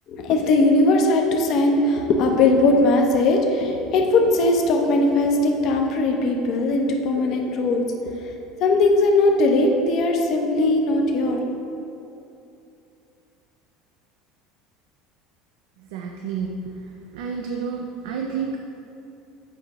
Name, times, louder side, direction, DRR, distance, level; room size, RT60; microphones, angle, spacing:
voice 1, 0.1-8.1 8.6-11.4, left 2 dB, 50° left, 2 dB, 0.6 m, -19 dB
voice 2, 15.9-16.7 17.1-18.6, right 6 dB, 85° right, 2 dB, 0.4 m, -29 dB
7.8 x 4.8 x 3.0 m, 2.7 s
cardioid pair, 140°, 0 cm